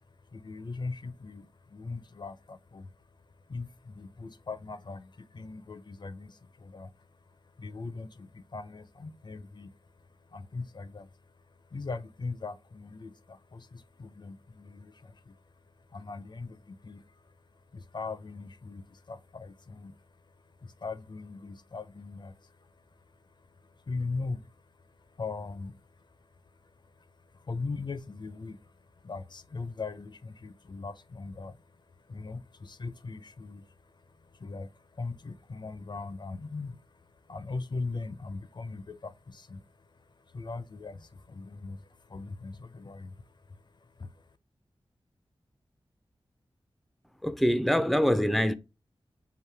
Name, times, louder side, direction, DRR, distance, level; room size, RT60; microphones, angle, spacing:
voice 1, 0.0-44.4, left 3 dB, 50° left, 0.5 m, -41 dB
voice 2, 47.2-48.5, equal, ahead, 0.4 m, -24 dB
4.9 x 2.6 x 3.3 m
wide cardioid pair, 60°, 10 cm